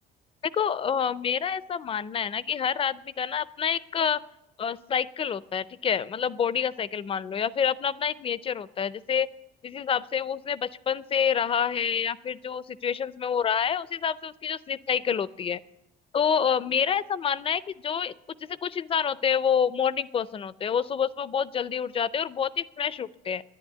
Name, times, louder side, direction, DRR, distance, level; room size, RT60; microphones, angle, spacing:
voice 1, 0.5-4.2 4.6-9.3 9.6-15.6 16.1-18.1 18.5-23.4, left 7 dB, 35° left, 19 dB, 0.4 m, -27 dB
11.0 x 10.0 x 9.1 m, 0.94 s
cardioid pair, 110°, 17 cm